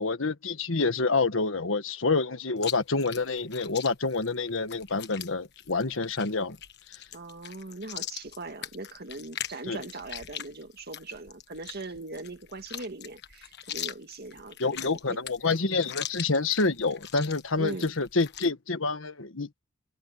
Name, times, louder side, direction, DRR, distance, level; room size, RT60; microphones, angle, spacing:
voice 1, 0.0-6.6 9.7-9.8 14.6-19.5, left 3 dB, 70° left, 1.5 m, -27 dB
Chewing mastication, 2.6-18.5, left 10 dB, 55° left, 1.4 m, -41 dB
voice 2, 7.1-15.2 17.6-17.9, right 2 dB, 50° right, 2.1 m, -40 dB
head